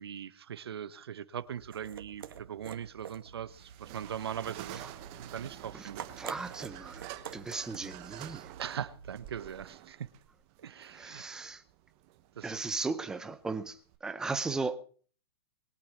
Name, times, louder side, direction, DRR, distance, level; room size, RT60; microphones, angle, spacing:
voice 1, 0.0-4.8 5.2-6.0 8.6-10.1 10.6-11.3 12.4-12.6, right 9 dB, 75° right, 1.2 m, -40 dB
sound 1, 1.3-9.6, right 8 dB, 60° right, 2.1 m, -48 dB
sound 2, 3.5-14.0, right 14 dB, 25° right, 1.0 m, -49 dB
voice 2, 6.2-8.5 10.9-11.6 12.4-14.8, right 4 dB, 5° right, 0.7 m, -37 dB
22.0 x 8.6 x 5.9 m
hypercardioid pair, 170°, 13 cm